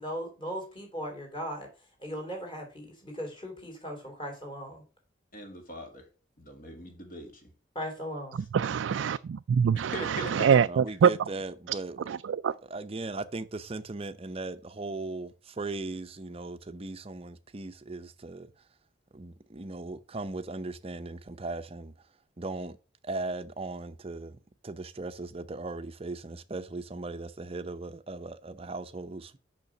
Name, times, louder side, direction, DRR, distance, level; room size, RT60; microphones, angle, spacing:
voice 1, 0.0-1.7 2.0-4.8 7.7-8.4, equal, 25° left, 3.4 m, -38 dB
voice 2, 5.3-6.1 6.4-7.5 9.7-10.5, equal, 45° left, 2.3 m, -40 dB
voice 3, 8.5-11.1 12.1-12.5, right 7 dB, 75° right, 0.3 m, -24 dB
voice 4, 10.6-12.1 12.6-18.5 19.1-22.1 22.4-22.8 23.0-29.4, right 2 dB, 30° right, 0.6 m, -38 dB
6.8 x 5.9 x 5.9 m
head